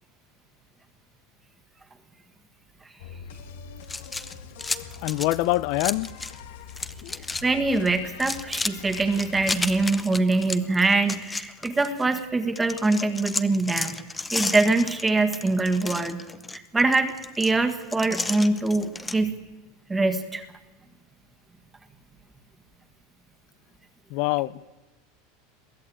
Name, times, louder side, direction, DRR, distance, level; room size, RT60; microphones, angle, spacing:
sound 1, 3.0-9.9, left 6 dB, 85° left, 1.7 m, -43 dB
sound 2, 3.8-6.4 6.7-7.4 7.7-12.2 12.6-19.2, left 3 dB, 10° left, 0.7 m, -33 dB
voice 1, 5.0-6.1 7.0-7.3 24.1-24.6, left 19 dB, 55° left, 0.6 m, -25 dB
voice 2, 7.4-14.0 14.3-16.2 16.5-19.4 19.9-20.4, right 3 dB, 10° right, 1.7 m, -23 dB
22.5 x 14.5 x 8.9 m
supercardioid pair, 145°, 0 cm